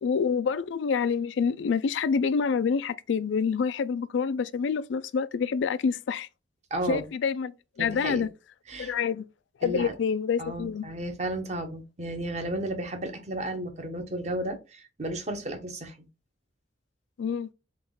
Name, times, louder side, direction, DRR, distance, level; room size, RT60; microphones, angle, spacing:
voice 1, 0.0-6.3 6.9-7.5 7.8-8.3 8.8-9.3 9.6-10.9 17.2-17.5, left 6 dB, 75° left, 0.3 m, -27 dB
voice 2, 6.7-7.1 7.8-8.3 8.7-8.9 9.6-10.0 10.4-15.9, right 1 dB, 35° right, 0.8 m, -33 dB
3.6 x 3.0 x 3.7 m
head